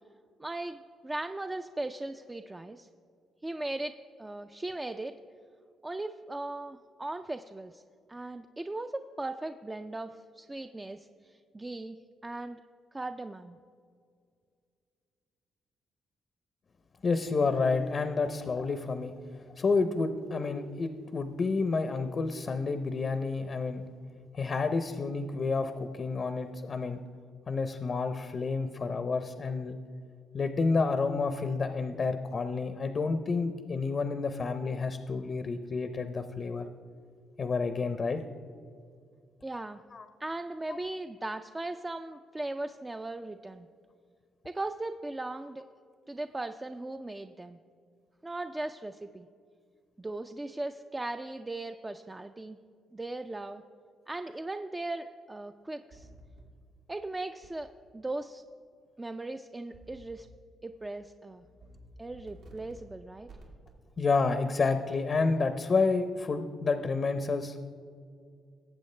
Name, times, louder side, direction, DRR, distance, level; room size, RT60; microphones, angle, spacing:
voice 1, 0.4-2.9 3.4-5.2 5.8-7.8 8.1-12.0 12.2-12.6 12.9-13.6 39.4-39.8 40.2-43.7 44.4-45.6 46.1-47.6 48.2-49.3 50.0-52.6 52.9-53.6 54.1-56.1 56.9-58.4 59.0-60.3 60.6-61.4 62.0-63.3, right 2 dB, 15° right, 7 dB, 0.4 m, -38 dB
voice 2, 17.0-19.1 19.6-23.8 24.3-27.0 27.5-29.8 30.3-36.7 37.4-38.2 39.9-40.0 40.7-40.8 64.0-67.6, left 4 dB, 45° left, 9 dB, 0.6 m, -29 dB
sound 1, 55.9-56.4 57.4-57.5 59.7-60.2 60.6-60.9 61.4-61.8 62.1-62.8 63.3-63.7, right 2 dB, 85° right, 2.4 m, -52 dB
18.5 x 7.7 x 3.2 m, 2.2 s
cardioid pair, 90°, 0 cm